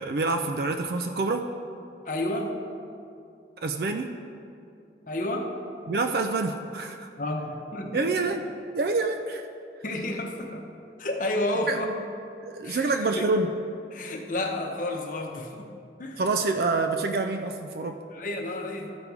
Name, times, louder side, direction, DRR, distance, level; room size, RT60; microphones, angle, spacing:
voice 1, 0.0-1.5 3.6-4.2 5.9-7.1 7.9-8.5 8.7-9.4 11.7-11.8 12.4-13.5 16.2-18.0, right 3 dB, 55° right, 6 dB, 0.4 m, -27 dB
voice 2, 2.0-2.5 5.1-5.5 7.2-8.3 9.8-10.7 11.0-11.9 12.6-13.3 13.9-15.7 16.0-16.2 18.1-18.9, left 1 dB, 45° left, 2 dB, 0.8 m, -31 dB
13.5 x 5.3 x 4.7 m, 2.5 s
head